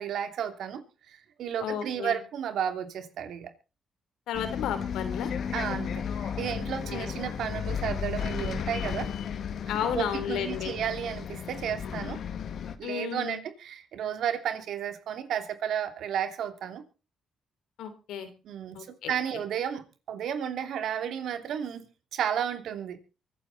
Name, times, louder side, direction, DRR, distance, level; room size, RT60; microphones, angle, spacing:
voice 1, 0.0-3.5 5.5-9.1 9.9-12.2 12.8-16.8 18.4-23.0, right 9 dB, 75° right, 7 dB, 2.8 m, -33 dB
voice 2, 1.6-2.2 4.3-5.3 6.9-7.2 9.7-10.7 12.8-13.4 17.8-18.3 18.7-19.1, left 8 dB, 85° left, 9 dB, 3.5 m, -33 dB
Bus, 4.3-12.8, left 7 dB, 65° left, 1.9 m, -34 dB
24.0 x 9.5 x 4.1 m, 0.33 s
cardioid pair, 85°, 0 cm